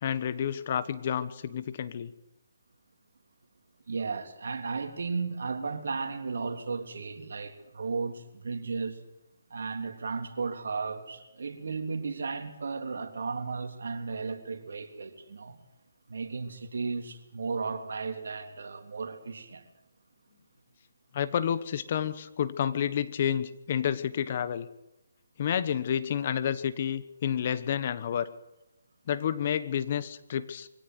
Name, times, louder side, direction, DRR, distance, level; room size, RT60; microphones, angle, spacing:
voice 1, 0.0-2.1 21.1-24.7 25.4-28.3 29.1-30.7, left 9 dB, 40° left, 14 dB, 1.2 m, -30 dB
voice 2, 3.9-9.0 9.5-15.6 16.1-19.6, right 4 dB, 70° right, 5 dB, 3.3 m, -34 dB
23.5 x 17.0 x 8.1 m, 0.94 s
hypercardioid pair, 160°, 0 cm